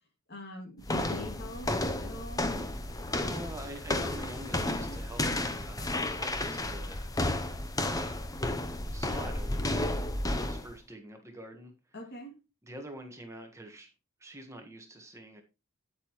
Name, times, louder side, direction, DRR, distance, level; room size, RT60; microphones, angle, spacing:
voice 1, 0.3-2.5 11.9-12.3, left 2 dB, 50° left, 2.5 m, -43 dB
sound 1, 0.8-10.7, left 1 dB, 15° left, 0.8 m, -32 dB
voice 2, 3.2-7.1 7.9-8.3 8.9-9.9 10.3-11.7 12.6-13.9 14.2-15.4, right 1 dB, 15° right, 1.5 m, -46 dB
9.5 x 8.1 x 3.2 m
head